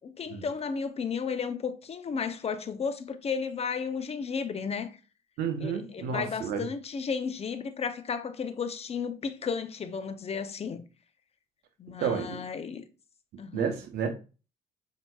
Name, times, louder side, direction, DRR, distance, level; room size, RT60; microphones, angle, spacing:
voice 1, 0.0-5.0 5.6-10.8 11.8-12.8 13.4-13.7, left 6 dB, 40° left, 0.5 m, -33 dB
voice 2, 5.4-6.6 12.0-12.4 13.3-14.1, right 6 dB, 70° right, 0.8 m, -31 dB
5.6 x 2.8 x 2.3 m
supercardioid pair, 70°, 17 cm